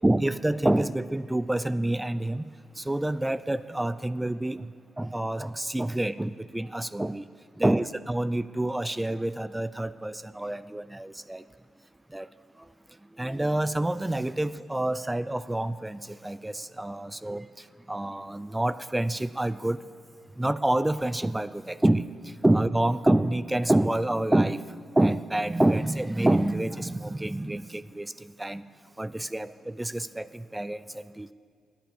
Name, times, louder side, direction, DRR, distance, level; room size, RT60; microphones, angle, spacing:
voice 1, 0.0-2.5 2.8-4.7 5.0-7.2 7.6-11.4 12.1-12.3 13.2-17.5 17.9-19.8 20.4-24.6 25.0-28.6 29.0-31.3, right 1 dB, 15° right, 15 dB, 0.3 m, -27 dB
10.0 x 9.0 x 7.1 m, 2.3 s
supercardioid pair, 50°, 0 cm